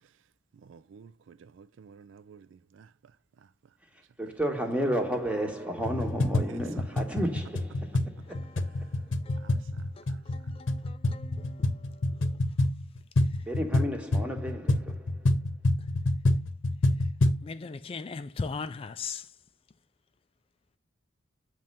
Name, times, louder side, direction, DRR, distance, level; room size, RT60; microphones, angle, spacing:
voice 1, 0.5-3.1 3.4-3.5 6.5-6.8 9.4-10.5, right 6 dB, 80° right, 0.4 m, -53 dB
voice 2, 4.2-9.0 13.4-15.3, equal, 5° right, 1.2 m, -32 dB
sound 1, 5.8-17.5, left 1 dB, 85° left, 0.8 m, -28 dB
voice 3, 8.2-12.6 13.2-13.5 15.8-15.9 16.9-17.1 17.4-19.4, left 4 dB, 30° left, 0.3 m, -41 dB
7.4 x 3.2 x 5.3 m
head